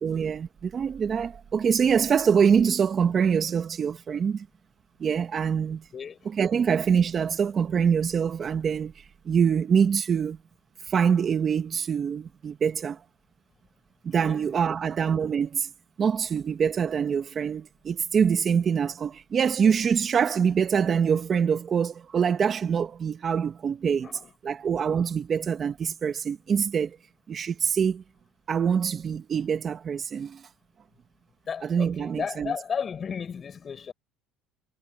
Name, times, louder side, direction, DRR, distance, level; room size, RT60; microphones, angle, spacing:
voice 1, 0.0-4.5 5.0-5.8 6.4-10.4 10.9-13.0 14.0-15.7 16.0-24.1 24.4-27.0 27.3-28.0 28.5-30.5 31.7-32.5, right 7 dB, 35° right, 1.5 m, -25 dB
voice 2, 5.9-6.4 14.2-14.5 24.0-24.3 31.5-33.9, left 6 dB, 35° left, 7.5 m, -34 dB
supercardioid pair, 110°, 0 cm